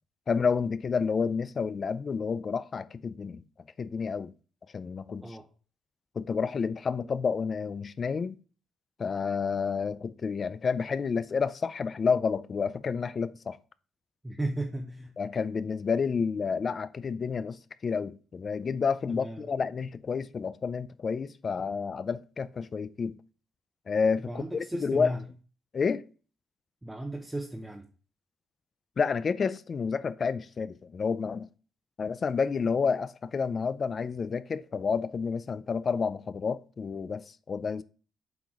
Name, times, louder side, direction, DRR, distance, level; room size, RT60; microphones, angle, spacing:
voice 1, 0.3-3.4 3.8-4.3 4.7-5.4 6.2-8.4 9.0-13.6 15.2-23.2 23.9-25.1 25.7-26.1 29.0-31.5 32.0-37.8, left 5 dB, 35° left, 0.4 m, -30 dB
voice 2, 14.2-15.1 19.1-19.5 24.2-25.2 26.8-27.9, right 1 dB, 10° right, 0.8 m, -35 dB
7.9 x 4.7 x 3.6 m
cardioid pair, 140°, 0 cm